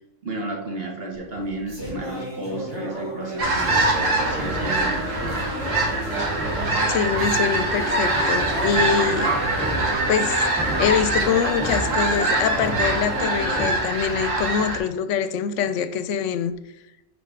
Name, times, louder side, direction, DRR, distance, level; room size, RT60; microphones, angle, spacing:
voice 1, 0.2-5.5, right 1 dB, 50° right, 1.5 m, -33 dB
sound 1, 1.1-14.6, right 1 dB, 20° right, 1.6 m, -34 dB
sound 2, 3.4-13.7, equal, 5° left, 1.0 m, -32 dB
sound 3, 3.4-14.8, right 2 dB, 80° right, 1.6 m, -24 dB
voice 2, 6.9-9.3 10.1-10.5 10.8-16.5, left 8 dB, 75° left, 0.9 m, -24 dB
5.6 x 4.2 x 6.1 m
omnidirectional pair, 1.3 m